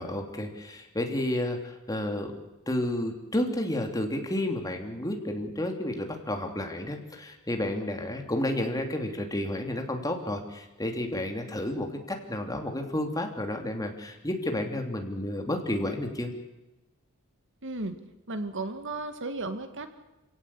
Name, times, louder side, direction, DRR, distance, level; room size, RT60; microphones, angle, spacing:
voice 1, 0.0-2.3 2.7-16.3, left 1 dB, 15° left, 4 dB, 3.2 m, -31 dB
voice 2, 17.6-18.0 18.3-19.9, right 2 dB, 60° right, 9 dB, 2.0 m, -34 dB
27.5 x 17.0 x 8.6 m, 1.0 s
head